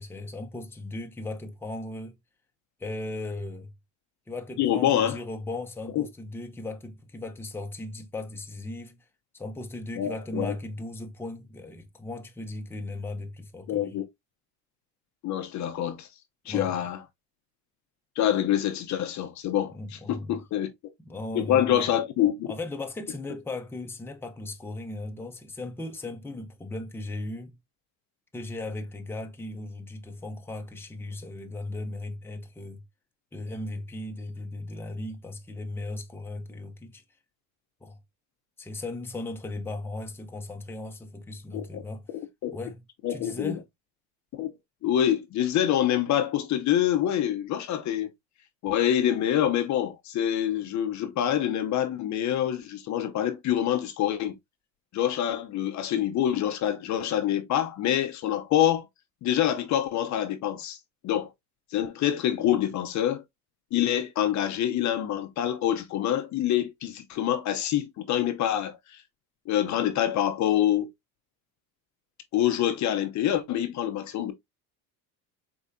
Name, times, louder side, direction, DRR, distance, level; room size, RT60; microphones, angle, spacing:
voice 1, 0.0-2.1 2.8-3.7 4.3-9.1 9.3-14.0 16.5-16.9 19.7-20.4 21.0-21.9 22.5-27.6 28.3-32.8 33.3-37.0 37.8-38.0 38.6-42.1 42.5-42.8 43.1-43.6, left 2 dB, 5° left, 0.8 m, -37 dB
voice 2, 4.6-5.2 6.0-6.1 10.0-10.5 13.7-14.1 15.2-16.1 16.5-17.0 18.2-20.7 21.3-22.5 41.7-41.8 42.4-42.6 43.0-43.6 44.3-44.5 44.8-48.1 48.6-54.3 54.9-58.9 59.2-60.8 61.0-61.3 61.7-63.2 63.7-69.0 69.5-70.9 72.3-74.3, left 11 dB, 50° left, 0.7 m, -26 dB
4.9 x 3.5 x 2.6 m
cardioid pair, 130°, 38 cm